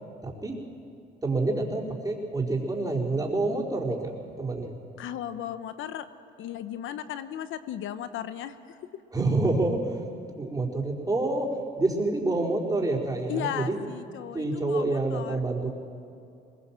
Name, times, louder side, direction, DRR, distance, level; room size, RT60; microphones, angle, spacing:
voice 1, 0.2-0.5 1.2-4.1 4.4-4.7 9.1-10.0 10.4-11.5 11.8-13.8 14.3-15.7, right 2 dB, 20° right, -3 dB, 4.5 m, -27 dB
voice 2, 5.0-6.0 6.4-8.8 13.3-15.4, left 10 dB, 80° left, 11 dB, 0.9 m, -35 dB
21.5 x 21.0 x 7.5 m, 2.6 s
cardioid pair, 90°, 20 cm